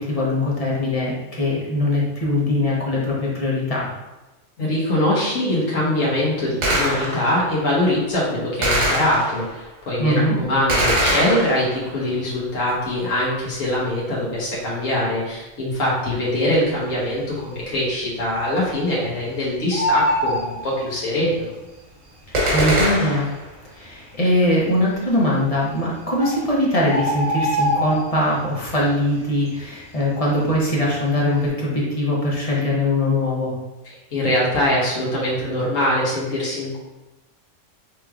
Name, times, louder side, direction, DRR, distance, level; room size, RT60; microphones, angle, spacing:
voice 1, 0.0-3.9 10.0-10.3 22.5-23.3 23.7-33.5, left 1 dB, 30° left, -5 dB, 0.9 m, -21 dB
voice 2, 4.6-21.5 33.8-36.8, left 1 dB, 85° left, -6 dB, 1.5 m, -23 dB
Gunshot gunfire, 6.6-7.4 8.6-9.6 10.7-12.0 22.3-23.4, right 1 dB, 90° right, 1.4 m, -22 dB
Bird, 16.8-17.4 17.7-17.8 18.1-19.3 19.5-21.4 22.2-22.3 22.9-23.0 23.2-23.4 24.0-24.5 25.4-25.5 25.9-26.0 26.2-28.5 28.8-29.1 29.5-30.8 31.2-31.4, left 1 dB, 40° right, 1.4 m, -25 dB
5.7 x 3.1 x 2.3 m, 1.1 s
omnidirectional pair, 1.3 m